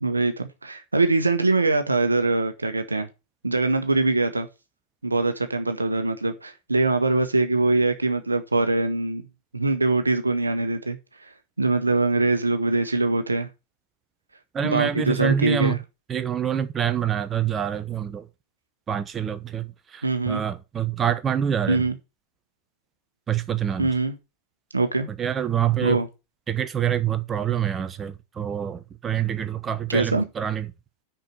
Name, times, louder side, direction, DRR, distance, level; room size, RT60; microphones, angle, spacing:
voice 1, 0.0-3.1 3.4-4.5 5.0-9.2 9.5-11.0 11.6-13.5 14.6-15.8 20.0-20.4 21.7-22.0 23.8-24.2 24.7-25.1 25.8-26.1 29.9-30.2, right 3 dB, 85° right, 1.1 m, -23 dB
voice 2, 14.5-15.8 16.1-18.3 18.9-21.8 23.3-23.9 25.2-26.0 26.5-30.7, right 9 dB, 25° right, 0.9 m, -26 dB
6.6 x 5.8 x 7.4 m
figure-of-eight pair, 95°, 0 cm